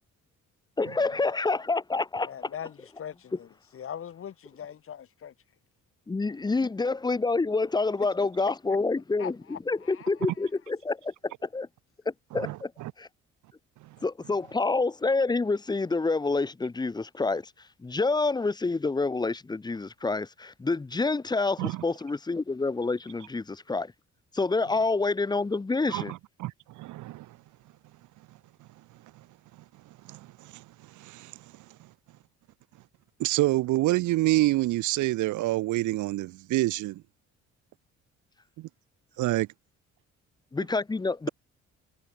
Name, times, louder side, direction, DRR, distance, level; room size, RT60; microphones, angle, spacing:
voice 1, 0.8-2.5 6.1-9.4 9.7-11.7 12.3-12.7 13.0-13.1 14.0-17.4 17.8-23.9 24.3-26.1 40.5-41.3, left 3 dB, 15° left, 0.6 m, -27 dB
voice 2, 2.2-3.5 3.7-5.3 8.2-8.5 9.2-9.6 9.9-10.1, left 9 dB, 45° left, 1.0 m, -41 dB
voice 3, 12.3-12.9 21.6-21.8 25.9-27.4 30.0-30.6 31.0-31.4 33.2-37.0 38.6-38.7 39.2-39.5, right 17 dB, 75° right, 0.6 m, -27 dB
cardioid pair, 90°, 30 cm